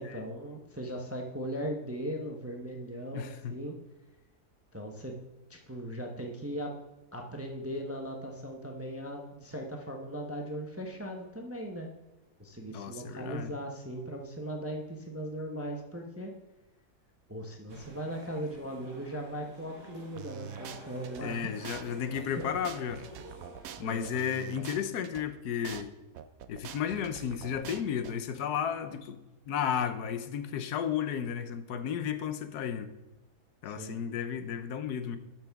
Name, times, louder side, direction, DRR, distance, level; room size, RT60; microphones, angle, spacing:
voice 1, 0.0-3.8 4.7-5.2 5.5-6.7 7.1-11.9 12.4-16.3 17.3-21.5 22.4-22.5 23.8-24.1 33.7-34.0, right 1 dB, 15° right, 1 dB, 0.6 m, -38 dB
voice 2, 3.1-3.5 12.7-13.5 21.2-23.1 23.8-25.9 26.5-29.2 29.5-32.9 33.6-35.2, left 8 dB, 85° left, 10 dB, 1.3 m, -33 dB
sound 1, 17.7-24.1, right 1 dB, 55° right, 1.6 m, -50 dB
sound 2, 20.2-21.2 21.7-21.8 22.2-25.2 25.7-25.8 26.2-28.1, right 9 dB, 70° right, 1.0 m, -44 dB
12.5 x 6.0 x 3.5 m, 1.1 s
omnidirectional pair, 1.6 m